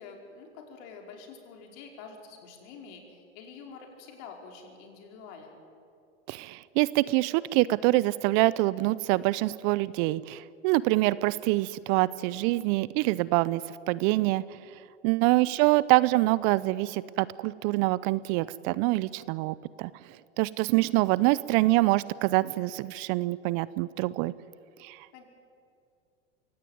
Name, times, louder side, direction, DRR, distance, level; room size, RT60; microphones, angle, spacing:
voice 1, 0.0-5.6 15.2-15.5 25.1-25.2, left 5 dB, 55° left, 2 dB, 5.2 m, -47 dB
voice 2, 6.3-13.6 13.9-14.4 15.0-19.9 20.4-24.3 24.8-25.0, right 20 dB, 45° right, 19 dB, 0.7 m, -25 dB
23.5 x 17.5 x 9.4 m, 2.5 s
hypercardioid pair, 95°, 34 cm